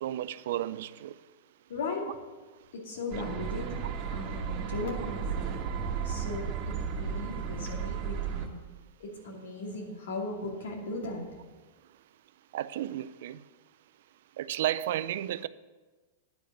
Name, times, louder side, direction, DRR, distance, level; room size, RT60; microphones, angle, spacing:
voice 1, 0.0-1.1 12.5-13.4 14.4-15.5, right 12 dB, 65° right, 0.4 m, -32 dB
voice 2, 1.7-2.0 2.7-5.5 6.0-8.6 9.0-11.2, left 2 dB, 75° left, 2.6 m, -37 dB
sound 1, 3.1-8.5, right 6 dB, 45° right, 1.6 m, -34 dB
10.5 x 5.1 x 8.1 m
hypercardioid pair, 120°, 0 cm